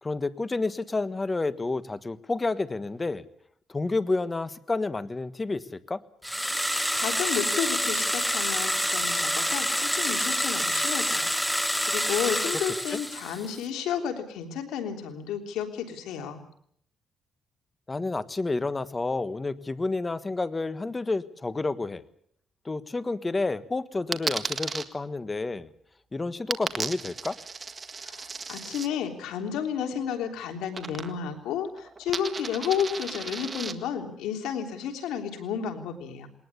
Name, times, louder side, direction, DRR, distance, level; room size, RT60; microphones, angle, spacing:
voice 1, 0.0-3.2 3.7-6.0 12.9-13.0 17.9-22.0 22.6-25.7 26.1-27.4, left 3 dB, 25° left, 14 dB, 1.4 m, -30 dB
sound 1, 6.2-13.6, equal, ahead, 1.0 m, -27 dB
voice 2, 6.9-16.4 28.0-36.3, left 8 dB, 90° left, 5 dB, 3.4 m, -32 dB
Coin (dropping), 24.1-24.8 26.5-28.9 30.7-31.4 31.7-33.7, right 4 dB, 35° right, 1.8 m, -34 dB
21.0 x 19.0 x 8.4 m, 0.66 s
cardioid pair, 90°, 0 cm